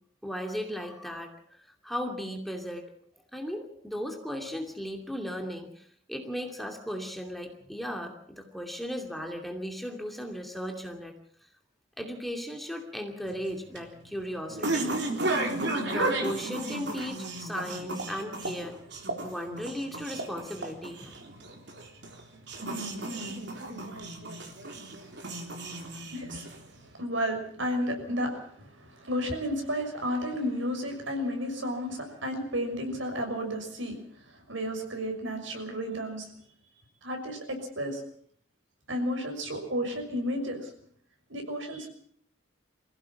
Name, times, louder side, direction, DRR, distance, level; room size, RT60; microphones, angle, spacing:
voice 1, 0.2-2.8 3.3-11.1 12.0-14.9 15.6-18.8 19.2-21.2 25.0-25.1 25.7-25.9, equal, ahead, 2 dB, 2.6 m, -36 dB
sound 1, 13.3-26.8, right 2 dB, 60° right, 3.7 m, -34 dB
voice 2, 26.1-26.5 26.9-34.0 34.3-36.3 37.0-38.0 38.9-40.7 41.3-41.9, equal, 80° right, 4 dB, 6.3 m, -32 dB
24.5 x 16.0 x 7.3 m, 0.62 s
head